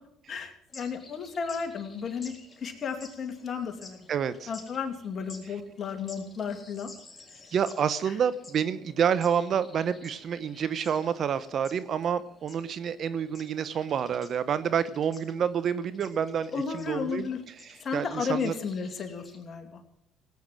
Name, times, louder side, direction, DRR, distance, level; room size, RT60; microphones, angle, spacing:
voice 1, 0.3-2.3 2.6-4.1 4.5-6.9 16.5-17.4 17.8-19.8, left 6 dB, 45° left, 5 dB, 2.6 m, -33 dB
sound 1, 0.7-19.4, left 3 dB, 20° left, 3.9 m, -53 dB
voice 2, 4.1-4.5 7.5-17.3 17.6-18.5, right 8 dB, 50° right, 15 dB, 0.8 m, -28 dB
17.0 x 9.3 x 7.6 m, 0.78 s
supercardioid pair, 80°, 0 cm